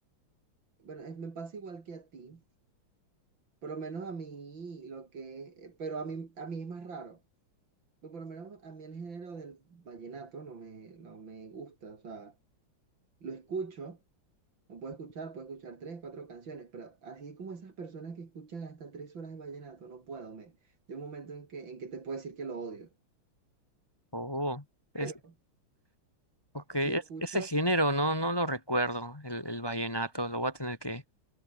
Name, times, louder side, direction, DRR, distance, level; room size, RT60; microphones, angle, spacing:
voice 1, 0.8-2.4 3.6-7.2 8.0-12.4 13.2-14.0 14.7-20.6 20.9-22.9 25.0-25.3 26.8-27.5, right 5 dB, 65° right, 3.7 m, -42 dB
voice 2, 24.1-24.6 24.9-25.1 26.5-31.0, right 1 dB, 10° left, 1.6 m, -31 dB
omnidirectional pair, 2.3 m